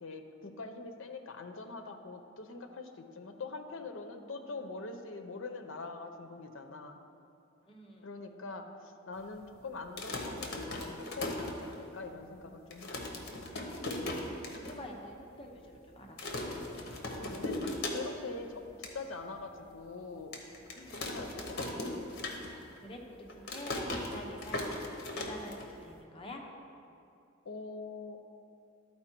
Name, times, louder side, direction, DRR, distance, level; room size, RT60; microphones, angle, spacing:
voice 1, 0.0-7.0 8.0-13.1 17.2-17.6 17.9-20.4 20.9-21.9 27.4-28.2, left 3 dB, 70° left, 6 dB, 0.6 m, -44 dB
voice 2, 7.7-8.2 13.5-16.5 20.7-21.1 22.5-26.4, left 1 dB, 25° left, 0 dB, 0.7 m, -48 dB
sound 1, 9.8-12.1 12.4-12.5 12.7-14.8 15.1-15.2 15.4-15.8 16.2-18.3 18.6-19.0 19.5-19.6 20.3-22.8 23.0-26.0, left 2 dB, 55° left, 0.9 m, -38 dB
12.0 x 4.4 x 4.5 m, 2.6 s
head